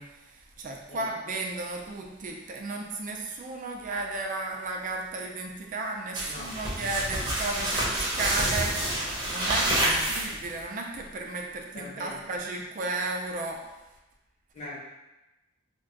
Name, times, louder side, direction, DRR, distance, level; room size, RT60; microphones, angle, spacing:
voice 1, 0.0-13.7, right 3 dB, 45° right, 1 dB, 0.4 m, -34 dB
voice 2, 6.2-6.5 9.8-10.0 11.7-12.2 14.5-14.8, left 2 dB, 35° left, -6 dB, 0.8 m, -41 dB
sound 1, 6.2-10.6, right 1 dB, 25° right, 0.8 m, -28 dB
2.4 x 2.2 x 3.8 m, 1.0 s
head